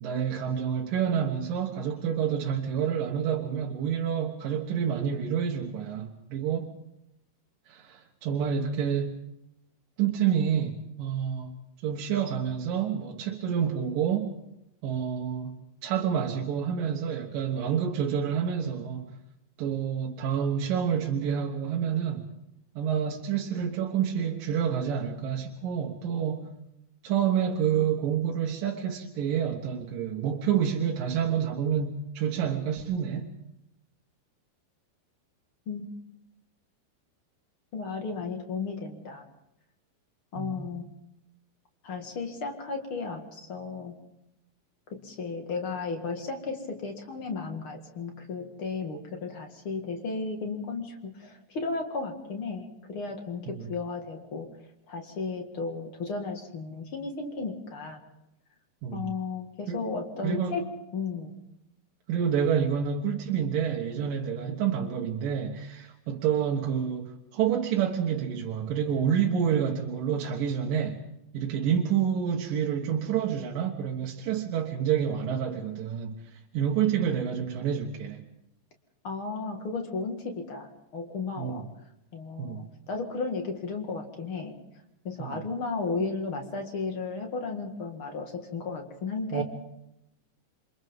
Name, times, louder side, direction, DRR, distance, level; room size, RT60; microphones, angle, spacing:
voice 1, 0.0-6.8 7.7-9.2 10.0-11.6 11.8-14.3 14.8-19.2 19.6-22.3 22.8-26.5 27.0-33.3 40.4-40.7 53.5-53.7 58.8-59.2 59.7-59.8 60.2-60.6 62.1-71.0 71.3-78.2 81.4-81.7 82.4-82.7 85.2-85.4 89.3-89.4, right 8 dB, 65° right, 0 dB, 2.4 m, -28 dB
voice 2, 37.7-39.3 40.3-41.0 41.8-44.0 44.9-54.5 54.9-58.0 58.9-61.3 79.0-81.6 82.1-84.6 85.0-89.4, left 4 dB, 45° left, 3 dB, 1.7 m, -34 dB
28.0 x 25.5 x 3.7 m, 0.84 s
omnidirectional pair, 5.1 m